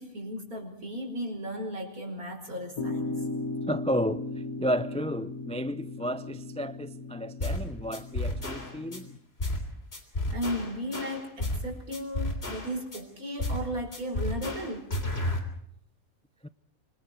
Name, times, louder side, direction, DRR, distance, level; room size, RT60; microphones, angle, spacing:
voice 1, 0.0-3.2 10.3-14.9, equal, 80° right, 5.4 m, -35 dB
sound 1, 2.8-9.2, left 2 dB, 85° left, 1.9 m, -37 dB
voice 2, 3.7-4.2 4.6-9.1 16.4-16.5, equal, 10° left, 0.3 m, -32 dB
sound 2, 7.4-7.6 7.9-9.0 9.4-9.6 9.9-11.6 11.9-13.0 13.4-13.7 13.9-15.4, left 1 dB, 45° left, 3.8 m, -32 dB
25.5 x 25.0 x 4.4 m
omnidirectional pair, 1.5 m